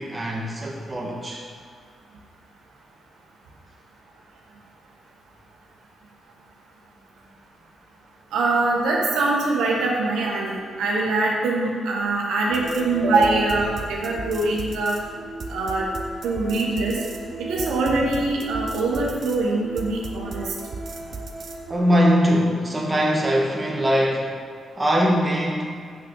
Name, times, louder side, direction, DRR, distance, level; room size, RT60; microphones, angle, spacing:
voice 1, 0.0-1.4 21.0-21.2 21.7-24.3 24.8-25.8, equal, 20° right, -2 dB, 1.4 m, -22 dB
voice 2, 8.3-15.0 15.5-15.9 16.2-17.0 17.4-20.5, right 2 dB, 85° right, -2 dB, 1.1 m, -23 dB
sound 1, 12.5-21.8, right 3 dB, 60° right, 0.7 m, -35 dB
6.6 x 5.8 x 3.9 m, 2.1 s
cardioid pair, 65°, 0 cm